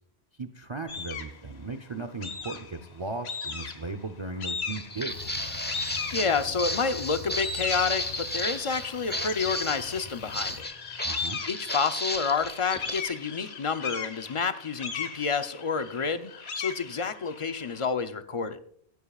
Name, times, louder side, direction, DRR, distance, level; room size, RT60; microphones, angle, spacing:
voice 1, 0.4-5.2 11.0-11.4, right 3 dB, 30° right, 8 dB, 0.7 m, -36 dB
sound 1, 0.9-1.4 2.2-2.8 3.2-3.9 4.4-5.1 5.7-6.6 7.1-17.8, left 5 dB, 65° left, 1.3 m, -37 dB
Walk footsteps, 4.7-13.0, left 1 dB, 10° left, 0.9 m, -34 dB
sound 2, 5.1-10.6, left 4 dB, 80° left, 2.0 m, -41 dB
voice 2, 6.1-10.7 11.5-18.6, left 5 dB, 35° left, 9 dB, 0.6 m, -29 dB
15.5 x 15.0 x 2.4 m, 0.63 s
omnidirectional pair, 1.2 m